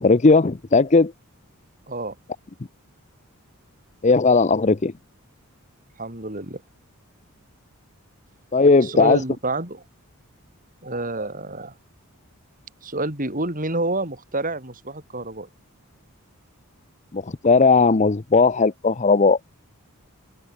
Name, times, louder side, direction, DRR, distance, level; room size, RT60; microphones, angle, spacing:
voice 1, 0.0-1.1 4.0-4.9 8.5-9.2 17.1-19.4, left 4 dB, 30° left, 0.6 m, -17 dB
voice 2, 6.0-6.6 8.8-9.8 10.8-11.7 12.8-15.5, right 2 dB, 40° right, 6.6 m, -28 dB
open air
head